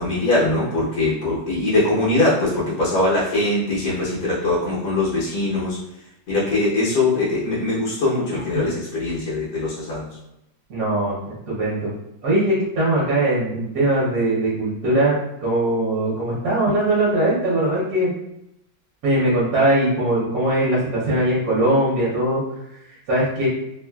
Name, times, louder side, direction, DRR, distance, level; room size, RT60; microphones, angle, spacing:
voice 1, 0.0-5.8 6.3-10.2, left 2 dB, 60° left, -8 dB, 1.2 m, -22 dB
voice 2, 10.7-11.9 12.2-18.1 19.0-22.4 22.7-23.5, right 1 dB, 60° right, -7 dB, 1.2 m, -21 dB
3.1 x 2.3 x 2.2 m, 0.86 s
omnidirectional pair, 2.0 m